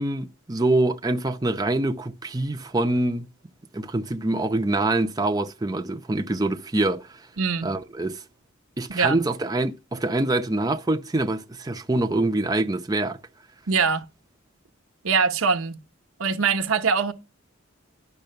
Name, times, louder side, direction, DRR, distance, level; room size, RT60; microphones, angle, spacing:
voice 1, 0.0-3.3 3.7-7.3 7.6-8.2 8.8-13.2, right 2 dB, 20° right, 0.6 m, -25 dB
voice 2, 7.4-7.7 8.9-9.2 13.7-14.1 15.0-15.8 16.2-17.1, right 5 dB, 90° right, 1.0 m, -23 dB
10.5 x 6.0 x 6.7 m
head